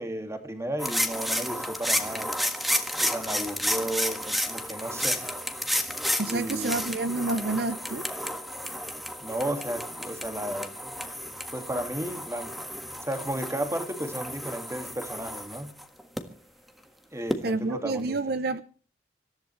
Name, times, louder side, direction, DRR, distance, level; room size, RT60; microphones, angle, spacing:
voice 1, 0.0-2.3 3.0-5.2 6.2-6.8 9.2-10.7 11.5-12.5 13.0-15.7 17.1-18.2, right 1 dB, 15° right, 2.1 m, -33 dB
sound 1, 0.8-16.2 17.3-17.4, equal, ahead, 1.6 m, -31 dB
voice 2, 6.2-8.1 17.4-18.6, right 3 dB, 55° right, 0.7 m, -29 dB
26.0 x 14.5 x 3.2 m
head